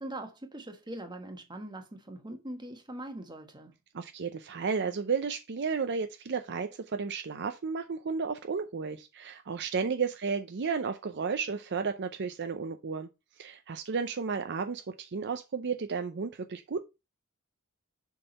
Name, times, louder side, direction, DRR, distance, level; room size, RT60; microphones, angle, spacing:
voice 1, 0.0-3.7 9.8-9.9, right 1 dB, 20° right, 1.3 m, -42 dB
voice 2, 3.9-13.1 13.4-16.8, right 5 dB, 55° right, 0.5 m, -33 dB
6.9 x 3.8 x 5.2 m
head